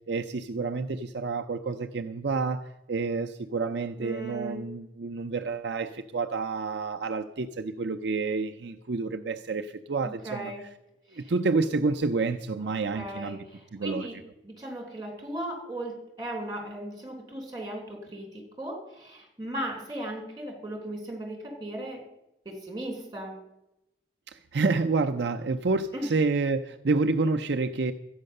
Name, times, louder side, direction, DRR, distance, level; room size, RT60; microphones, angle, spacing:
voice 1, 0.1-10.5 11.1-13.4 13.7-14.1 24.3-27.9, right 3 dB, 65° right, 5 dB, 0.6 m, -29 dB
voice 2, 4.0-4.7 10.0-10.6 11.1-11.3 12.9-14.2 14.4-22.0 22.5-23.4 25.9-26.1, right 1 dB, 20° right, 1 dB, 3.6 m, -37 dB
13.0 x 9.6 x 6.5 m, 0.88 s
head